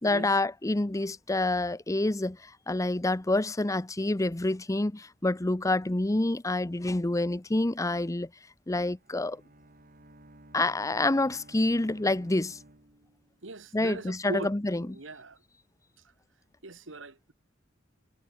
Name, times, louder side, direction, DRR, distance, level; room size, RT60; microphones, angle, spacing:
voice 1, 0.0-8.3 8.7-9.4 10.5-12.6 13.7-15.0, left 2 dB, 15° left, 0.7 m, -27 dB
Bowed string instrument, 8.9-13.5, right 1 dB, 50° right, 3.8 m, -55 dB
voice 2, 13.4-14.5 14.9-15.4 16.6-17.3, right 2 dB, 75° right, 2.4 m, -40 dB
head